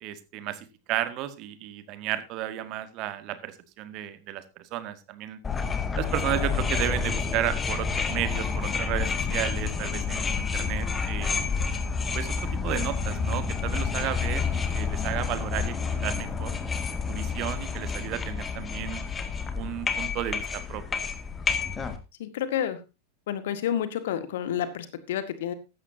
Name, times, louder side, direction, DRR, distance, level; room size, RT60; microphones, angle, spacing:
voice 1, 0.0-5.4 6.0-11.5 12.1-16.6 17.1-19.0 19.5-20.8, right 12 dB, 40° right, 12 dB, 1.8 m, -33 dB
sound 1, 5.4-22.0, left 5 dB, 15° left, 2.0 m, -29 dB
voice 2, 22.2-22.8 23.3-25.5, left 10 dB, 55° left, 12 dB, 1.8 m, -29 dB
15.0 x 13.0 x 2.7 m, 0.27 s
figure-of-eight pair, 90°, 0 cm